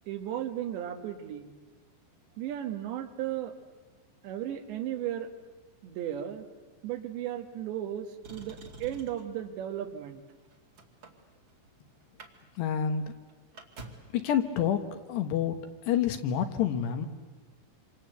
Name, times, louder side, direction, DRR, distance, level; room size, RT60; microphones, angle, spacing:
voice 1, 0.1-1.5 2.4-3.6 4.2-5.3 5.8-6.5 6.8-10.2, right 11 dB, 70° right, 7 dB, 3.6 m, -35 dB
Motor vehicle (road), 8.2-9.4 10.1-11.7 12.0-12.3 12.6-12.7 13.1-14.2 15.2-15.3, right 2 dB, 35° right, 2.1 m, -48 dB
voice 2, 12.6-13.1 14.1-15.6 15.8-17.1, left 9 dB, 70° left, 8 dB, 3.2 m, -28 dB
27.5 x 26.0 x 8.0 m, 1.3 s
omnidirectional pair, 5.5 m